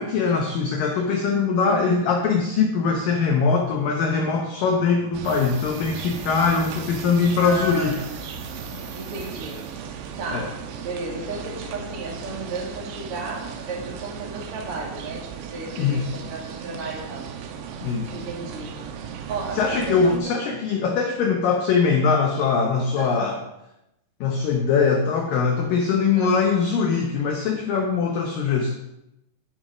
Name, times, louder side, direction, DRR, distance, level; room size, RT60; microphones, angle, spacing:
voice 1, 0.0-7.9 10.3-10.5 15.8-16.1 17.8-18.1 19.6-23.4 24.2-28.7, left 5 dB, 75° left, 2 dB, 2.1 m, -22 dB
sound 1, 5.1-20.2, right 7 dB, 85° right, 3.0 m, -36 dB
sound 2, 5.2-9.8 10.1-10.4, right 5 dB, 60° right, 2.7 m, -44 dB
voice 2, 7.4-8.0 9.0-9.7 10.2-17.3 18.1-20.3 23.0-23.3 26.1-26.4, right 3 dB, 40° right, -2 dB, 2.4 m, -34 dB
12.0 x 5.8 x 5.0 m, 0.87 s
omnidirectional pair, 5.1 m